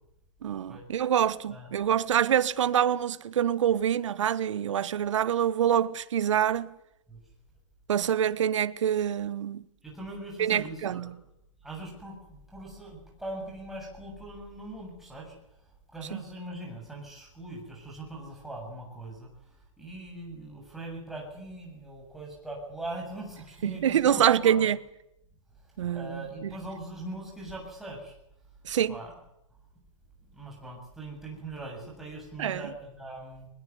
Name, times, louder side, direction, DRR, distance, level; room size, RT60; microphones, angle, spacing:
voice 1, 0.4-6.7 7.9-9.6 10.4-11.1 16.1-16.2 23.6-24.8 25.8-26.2 28.6-29.0 32.4-32.7, right 9 dB, 70° right, 1.4 m, -26 dB
voice 2, 9.8-11.1 11.6-15.4 15.9-24.7 25.6-28.2 28.9-29.2 30.3-33.5, right 1 dB, ahead, 7.4 m, -41 dB
22.0 x 20.5 x 9.6 m
hypercardioid pair, 160°, 16 cm